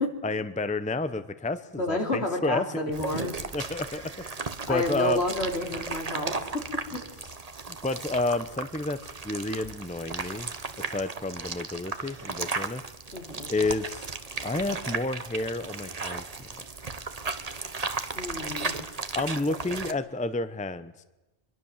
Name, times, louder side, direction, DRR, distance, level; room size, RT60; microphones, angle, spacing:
voice 1, 0.2-2.8 3.5-4.0 4.7-5.2 7.8-9.0 9.2-10.5 10.8-12.8 13.5-14.1 14.4-16.2 16.5-16.6 19.1-21.0, left 2 dB, 10° left, 12 dB, 0.8 m, -30 dB
voice 2, 1.8-3.4 4.7-6.6 13.1-13.5 18.1-18.8, left 1 dB, 70° left, 2 dB, 3.9 m, -30 dB
sound 1, 2.9-19.9, right 4 dB, 35° right, 1.2 m, -35 dB
24.0 x 22.0 x 7.4 m, 1.1 s
omnidirectional pair, 1.1 m